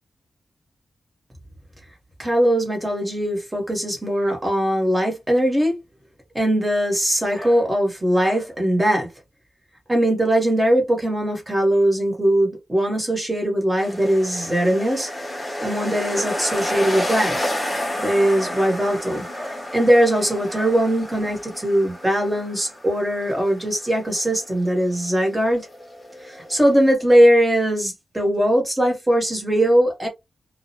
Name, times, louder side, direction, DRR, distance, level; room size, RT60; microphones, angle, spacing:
voice 1, 2.2-5.8 6.3-9.1 9.9-15.1 15.6-17.5 18.0-25.7 26.2-30.1, equal, 15° right, 1.0 m, -20 dB
sound 1, 13.8-26.9, left 1 dB, 15° left, 0.8 m, -31 dB
2.4 x 2.0 x 2.7 m
wide cardioid pair, 125°, 0 cm